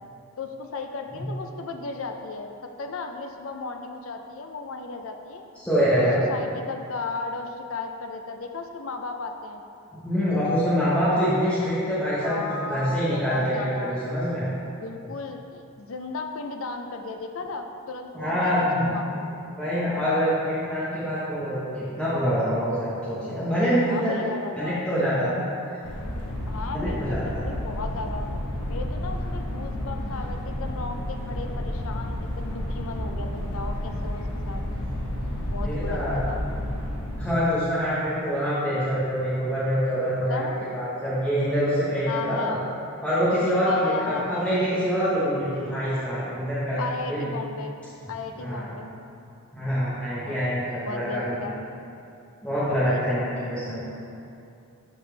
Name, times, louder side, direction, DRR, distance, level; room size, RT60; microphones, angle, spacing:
voice 1, 0.4-5.4 5.9-9.6 12.2-14.0 14.8-18.5 18.8-19.3 23.8-24.8 26.5-28.3 28.7-34.6 35.5-36.4 40.3-40.6 42.1-42.6 43.6-44.5 46.8-47.8 48.1-48.9 50.1-50.6 50.8-51.5 52.8-53.3, left 3 dB, 65° left, 5 dB, 0.6 m, -35 dB
voice 2, 5.6-6.2 10.0-12.4 12.7-14.5 18.1-18.9 19.6-24.2 24.6-25.4 25.7-25.8 26.7-27.4 29.2-29.3 35.6-36.2 37.2-40.4 40.7-42.6 43.0-46.8 47.1-47.3 48.4-48.9 49.5-51.5 52.4-53.9, equal, 5° left, -12 dB, 1.2 m, -25 dB
sound 1, 25.8-37.3, left 1 dB, 85° left, 1.0 m, -31 dB
11.5 x 4.2 x 3.4 m, 2.7 s
head